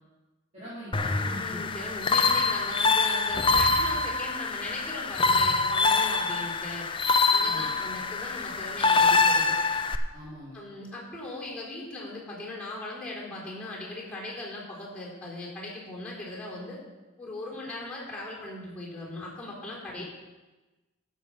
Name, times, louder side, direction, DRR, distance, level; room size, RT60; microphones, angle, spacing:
voice 1, 0.5-1.6 7.3-7.7 10.1-10.6 19.9-20.0, equal, 35° right, -12 dB, 3.7 m, -42 dB
sound 1, 0.9-10.0, left 4 dB, 25° left, 0.5 m, -25 dB
voice 2, 1.2-6.9 7.3-9.6 10.5-16.8 17.2-20.0, left 2 dB, 5° left, -5 dB, 3.7 m, -39 dB
12.0 x 7.2 x 5.5 m, 1.1 s
head